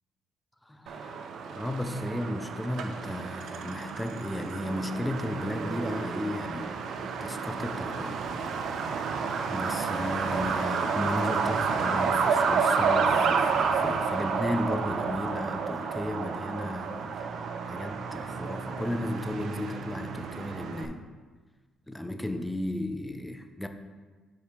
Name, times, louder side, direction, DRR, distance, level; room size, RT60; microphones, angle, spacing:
voice 1, 0.7-1.1 1.5-8.2 9.5-21.0 21.9-23.7, left 1 dB, 10° left, 7 dB, 0.6 m, -34 dB
Truck, 0.9-20.9, right 5 dB, 70° right, 0.5 m, -30 dB
5.6 x 4.9 x 4.7 m, 1.4 s
cardioid pair, 90°, 0 cm